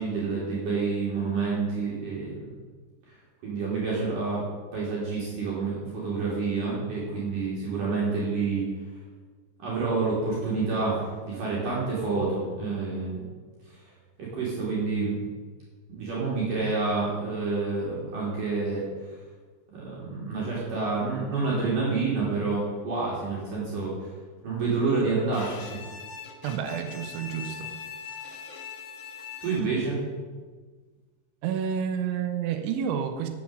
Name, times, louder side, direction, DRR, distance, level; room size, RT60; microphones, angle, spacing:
voice 1, 0.0-2.5 3.1-3.2 3.4-4.4 4.7-8.6 9.6-13.3 13.6-13.9 14.2-15.2 15.9-19.2 19.7-24.1 24.4-25.8 29.4-30.0, right 4 dB, 50° right, -6 dB, 3.9 m, -28 dB
Bowed string instrument, 25.3-29.9, left 7 dB, 80° left, 1.7 m, -41 dB
voice 2, 26.4-27.8 31.4-33.3, right 8 dB, 80° right, 8 dB, 3.3 m, -29 dB
11.5 x 7.6 x 7.5 m, 1.4 s
omnidirectional pair, 5.6 m